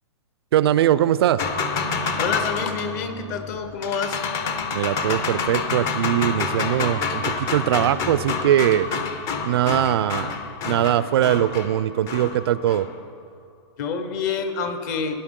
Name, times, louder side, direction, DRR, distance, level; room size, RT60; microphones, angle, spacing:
voice 1, 0.5-1.4 4.7-8.9 9.4-10.3 10.6-12.9, right 11 dB, 55° right, 16 dB, 0.5 m, -21 dB
sound 1, 1.4-13.0, left 5 dB, 20° left, 0.6 m, -28 dB
voice 2, 1.9-4.7 6.4-6.5 13.8-15.1, left 5 dB, 35° left, 8 dB, 1.0 m, -28 dB
17.5 x 10.5 x 3.7 m, 2.3 s
hypercardioid pair, 160°, 16 cm